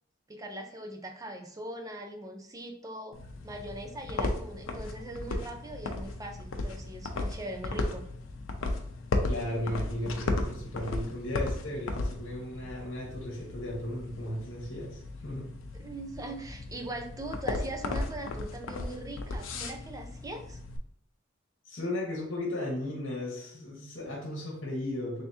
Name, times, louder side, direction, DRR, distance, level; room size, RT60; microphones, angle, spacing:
voice 1, 0.3-8.0 15.7-20.6, right 1 dB, 20° right, 4 dB, 0.4 m, -41 dB
sound 1, 3.1-20.8, left 2 dB, 80° left, 0.5 m, -35 dB
voice 2, 9.3-15.5 21.6-25.2, left 1 dB, 65° left, -2 dB, 1.0 m, -35 dB
3.4 x 2.8 x 3.4 m, 0.69 s
head